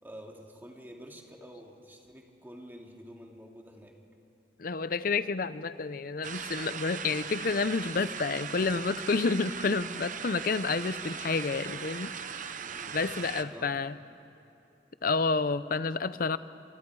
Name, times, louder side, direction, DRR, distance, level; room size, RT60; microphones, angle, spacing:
voice 1, 0.0-3.9 12.5-13.7, equal, 10° right, 0 dB, 2.4 m, -49 dB
voice 2, 4.6-12.1 12.9-13.9 15.0-16.4, left 4 dB, 50° left, 15 dB, 0.6 m, -29 dB
sound 1, 6.2-13.4, right 6 dB, 45° right, 0.9 m, -39 dB
28.0 x 26.5 x 4.8 m, 2.9 s
head